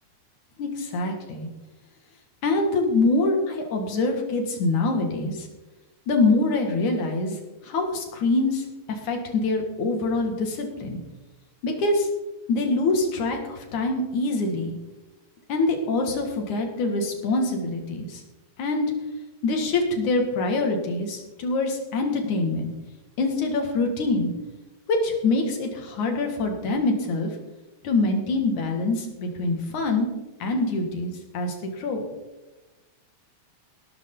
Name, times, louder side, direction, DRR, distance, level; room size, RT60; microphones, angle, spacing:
voice 1, 0.6-1.5 2.4-5.5 6.1-7.4 7.6-11.0 11.6-12.1 12.5-14.8 15.5-18.2 18.6-18.9 19.4-22.7 23.2-24.3 24.9-27.3 27.8-30.1 30.4-32.0, left 2 dB, 85° left, 3 dB, 3.7 m, -25 dB
18.0 x 12.5 x 4.0 m, 1.1 s
omnidirectional pair, 3.3 m